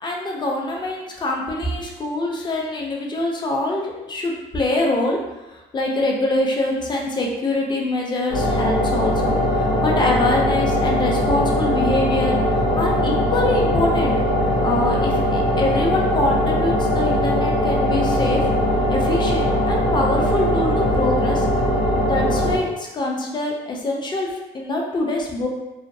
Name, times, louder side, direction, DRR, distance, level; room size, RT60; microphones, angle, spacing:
voice 1, 0.0-5.2 5.5-12.4 12.8-14.2 14.6-18.5 18.9-21.5 22.1-25.5, left 2 dB, 25° left, 0 dB, 0.5 m, -24 dB
sound 1, 8.3-22.6, equal, 80° left, 0.9 m, -20 dB
2.5 x 2.2 x 2.5 m, 1.0 s
cardioid pair, 110°, 17 cm